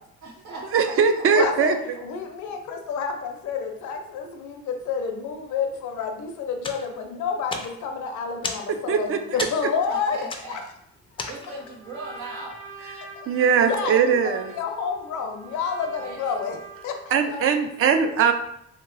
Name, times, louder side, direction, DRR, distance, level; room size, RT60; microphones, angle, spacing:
voice 1, 0.2-1.5 9.9-10.6 11.3-12.6 15.8-16.2, right 2 dB, 90° right, -3 dB, 0.9 m, -39 dB
voice 2, 0.7-2.0 8.7-9.2 13.3-14.5 17.1-18.3, right 6 dB, 50° right, 8 dB, 0.4 m, -21 dB
voice 3, 1.3-10.6 11.2-11.3 13.2-13.3 13.7-16.6 16.8-17.4, left 6 dB, 75° left, 5 dB, 0.6 m, -29 dB
sound 1, 6.6-11.8, left 3 dB, 20° left, 0.3 m, -36 dB
Trumpet, 11.4-17.1, right 2 dB, 65° right, 1.4 m, -44 dB
2.9 x 2.9 x 2.5 m, 0.77 s
cardioid pair, 90°, 30 cm